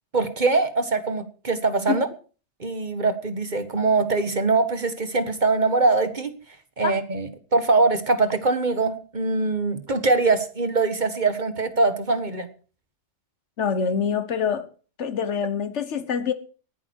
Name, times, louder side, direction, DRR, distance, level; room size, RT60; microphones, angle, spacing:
voice 1, 0.1-2.1 2.6-6.3 6.8-12.5, right 3 dB, 40° right, 1.7 m, -22 dB
voice 2, 13.6-14.7 15.0-16.3, left 7 dB, 85° left, 1.5 m, -25 dB
19.0 x 11.0 x 4.7 m
omnidirectional pair, 1.2 m